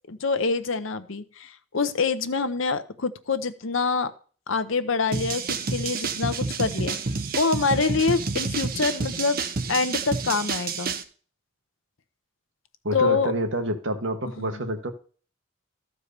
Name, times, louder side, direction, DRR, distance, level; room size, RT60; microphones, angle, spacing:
voice 1, 0.1-4.1 4.5-7.0 7.4-9.4 9.7-10.9 12.9-13.3 14.4-14.6, left 4 dB, 75° left, 11 dB, 0.8 m, -26 dB
sound 1, 5.1-11.0, right 4 dB, 45° right, 0.7 m, -29 dB
voice 2, 12.8-14.9, right 1 dB, 65° right, 6 dB, 1.3 m, -28 dB
13.5 x 4.7 x 6.7 m, 0.41 s
head